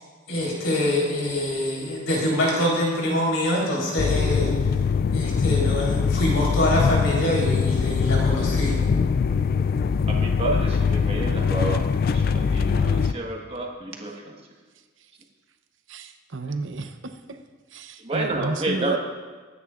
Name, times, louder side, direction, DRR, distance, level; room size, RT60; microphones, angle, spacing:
voice 1, 0.3-4.5 5.1-8.8, left 1 dB, 90° left, -4 dB, 4.0 m, -24 dB
sound 1, 4.0-13.1, left 5 dB, 50° left, 0.3 m, -22 dB
voice 2, 10.1-14.4 18.0-19.0, right 2 dB, 30° right, 0 dB, 1.5 m, -30 dB
voice 3, 15.9-17.0 17.7-19.0, right 3 dB, 70° right, 7 dB, 0.8 m, -31 dB
23.0 x 9.8 x 2.5 m, 1.4 s
head